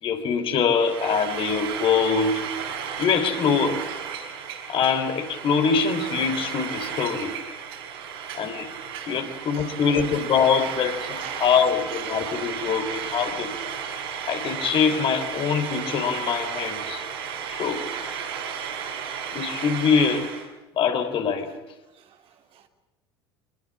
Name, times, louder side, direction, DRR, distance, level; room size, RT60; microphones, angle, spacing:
voice 1, 0.0-2.5 3.0-3.9 4.7-7.3 8.3-8.7 9.1-13.5 14.3-17.0 17.5-17.8 19.3-20.3 20.7-21.5, left 6 dB, 45° left, 3.5 m, -23 dB
Frying (food), 0.7-20.5, right 7 dB, 65° right, 6.5 m, -33 dB
voice 2, 9.1-10.1 11.2-12.3 21.9-22.7, right 9 dB, 45° right, 3.1 m, -46 dB
25.5 x 21.5 x 8.8 m
figure-of-eight pair, 70°, 13 cm